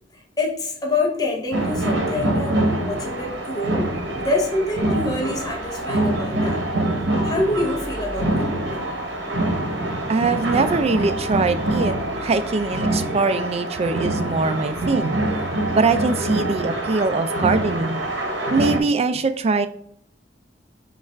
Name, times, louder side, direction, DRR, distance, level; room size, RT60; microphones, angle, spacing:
voice 1, 0.4-6.6 7.2-8.9, left 2 dB, 20° left, 0 dB, 0.7 m, -26 dB
sound 1, 1.5-18.8, right 1 dB, 75° right, 0.9 m, -25 dB
voice 2, 10.1-15.2 15.7-18.0 18.5-19.7, right 4 dB, 35° right, 10 dB, 0.4 m, -22 dB
5.3 x 2.4 x 3.3 m, 0.67 s
head